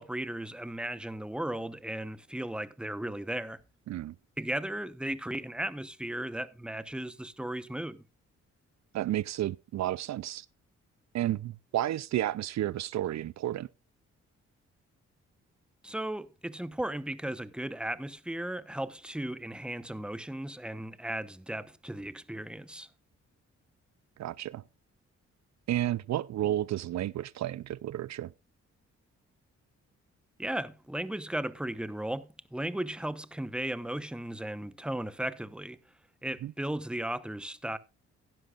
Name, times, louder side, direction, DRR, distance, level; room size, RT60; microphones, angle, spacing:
voice 1, 0.0-3.6 4.4-8.0 15.8-22.9 30.4-35.8 36.2-37.8, right 1 dB, 5° right, 1.0 m, -36 dB
voice 2, 8.9-10.5 11.1-13.7 24.2-24.6 25.7-28.3 36.4-36.5, right 13 dB, 65° right, 0.5 m, -31 dB
16.0 x 11.0 x 2.4 m
cardioid pair, 65°, 29 cm